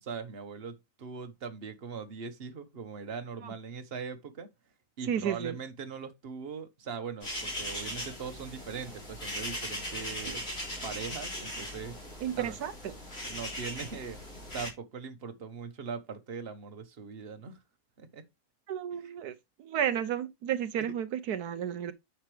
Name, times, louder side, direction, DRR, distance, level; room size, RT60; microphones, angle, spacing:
voice 1, 0.0-4.5 5.0-10.4 10.8-12.0 12.3-12.6 13.2-17.6 18.0-18.2 18.9-19.1 20.8-20.9, right 5 dB, 40° right, 1.4 m, -41 dB
voice 2, 5.1-5.5 12.2-12.7 18.7-19.3 19.6-21.9, right 9 dB, 80° right, 1.3 m, -32 dB
sound 1, 7.2-14.7, equal, 40° left, 4.0 m, -39 dB
9.6 x 5.9 x 3.4 m
omnidirectional pair, 1.6 m